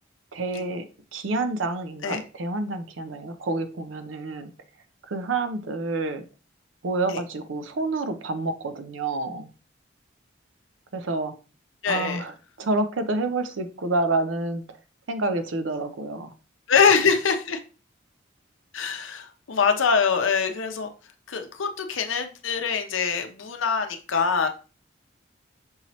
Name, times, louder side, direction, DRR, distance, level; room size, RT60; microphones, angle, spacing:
voice 1, 0.3-0.8 1.1-4.5 5.1-6.3 6.8-9.5 10.9-11.3 11.9-14.8 15.1-16.3, right 2 dB, 80° right, 9 dB, 0.6 m, -28 dB
voice 2, 11.8-12.2 16.7-17.6 18.7-20.9 21.3-24.5, left 6 dB, 80° left, 6 dB, 0.6 m, -23 dB
5.5 x 2.8 x 3.0 m, 0.34 s
head